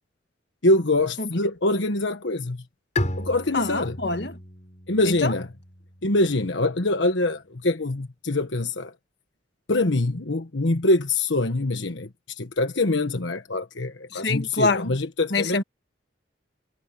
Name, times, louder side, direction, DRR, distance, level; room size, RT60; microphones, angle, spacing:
voice 1, 0.6-2.6 3.2-3.9 4.9-5.5 6.0-8.9 9.7-12.1 12.4-15.6, left 2 dB, 85° left, 1.3 m, -24 dB
Bowed string instrument, 3.0-6.5, left 1 dB, 40° left, 7.0 m, -33 dB
voice 2, 3.5-4.4 5.1-5.3 14.1-15.0 15.3-15.6, left 3 dB, 60° left, 1.9 m, -26 dB
head